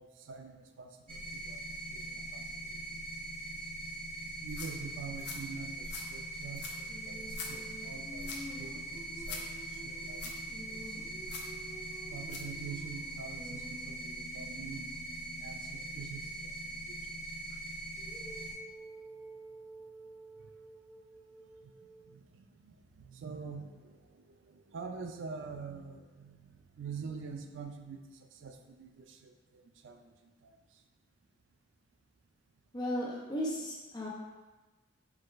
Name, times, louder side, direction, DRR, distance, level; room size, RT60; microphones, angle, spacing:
voice 1, 0.0-1.6 1.9-3.0 4.4-10.4 10.7-11.0 12.1-14.9 15.3-17.1 17.5-17.6 20.4-20.5 21.6-21.7 22.0-30.8 33.6-33.7 34.0-34.1, right 5 dB, 80° right, 6 dB, 0.4 m, -46 dB
sound 1, 1.1-18.5, right 1 dB, 30° right, 1.1 m, -42 dB
Sand Step, 4.3-12.5, left 4 dB, 60° left, 0.6 m, -47 dB
Female singing, 6.9-15.8 18.0-22.2, right 1 dB, 10° right, 0.6 m, -50 dB
voice 2, 32.7-34.1, equal, 20° left, -4 dB, 0.8 m, -35 dB
4.7 x 2.3 x 4.4 m, 1.2 s
head